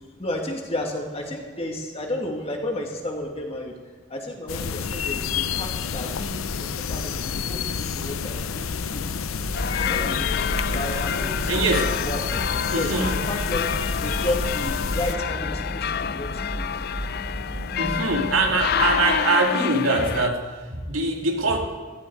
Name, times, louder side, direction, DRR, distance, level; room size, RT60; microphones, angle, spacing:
voice 1, 0.2-3.7 4.1-9.0 9.7-10.3 10.7-13.7 14.0-16.7, left 1 dB, 30° left, 1 dB, 2.2 m, -32 dB
sound 1, 4.5-15.1, left 6 dB, 90° left, 0.7 m, -29 dB
Drone Loop (Fixed), 9.4-19.1, right 1 dB, 30° right, 2.8 m, -34 dB
sound 2, 9.5-20.3, left 8 dB, 50° left, 0.4 m, -28 dB
voice 2, 11.5-12.0 12.7-13.2 17.8-21.6, right 2 dB, 80° right, 2 dB, 2.3 m, -23 dB
16.5 x 13.5 x 4.8 m, 1.5 s
head